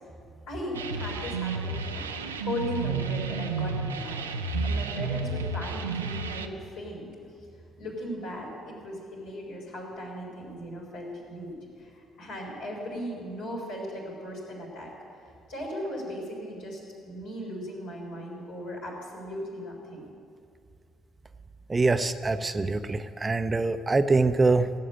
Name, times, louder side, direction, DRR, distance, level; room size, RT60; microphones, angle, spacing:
voice 1, 0.5-4.3 4.6-7.1 7.8-14.9 15.5-20.0, equal, 70° left, -4 dB, 5.0 m, -37 dB
sound 1, 0.7-6.5, right 4 dB, 85° right, 0.6 m, -32 dB
voice 2, 21.7-24.7, right 3 dB, 25° right, 10 dB, 0.7 m, -24 dB
17.0 x 7.7 x 9.2 m, 2.4 s
figure-of-eight pair, 50°, 0 cm